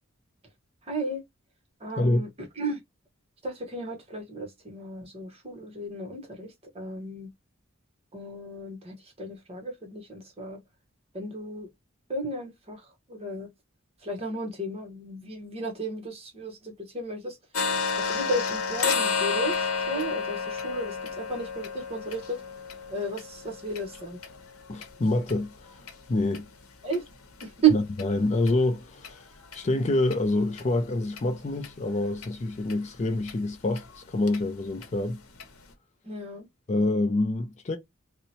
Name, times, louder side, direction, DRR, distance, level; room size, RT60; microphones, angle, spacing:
voice 1, 0.8-1.2 1.8-2.3 2.6-2.8 3.4-7.3 8.1-10.6 11.1-11.7 12.1-13.5 14.0-17.4 17.9-22.4 22.9-24.2 26.8-27.0 27.4-27.8 36.0-36.5, right 3 dB, 30° right, 0.9 m, -33 dB
voice 2, 2.0-2.3 24.7-25.8 26.1-26.5 27.7-29.3 29.5-35.2 36.7-37.8, left 2 dB, 30° left, 0.4 m, -26 dB
sound 1, 17.5-25.3 25.8-25.9 26.3-26.5 26.9-27.0 27.4-27.5 28.0-28.1 28.5-28.6 29.0-29.1 29.5-29.6 30.1-30.2 30.6-30.7 31.2-31.3 31.6-31.7 32.2-32.3 32.7-32.8 33.3-33.4 33.8-33.9 34.3-34.4 34.8-34.9 35.4-35.5, left 5 dB, 85° left, 0.8 m, -31 dB
2.8 x 2.1 x 4.0 m
head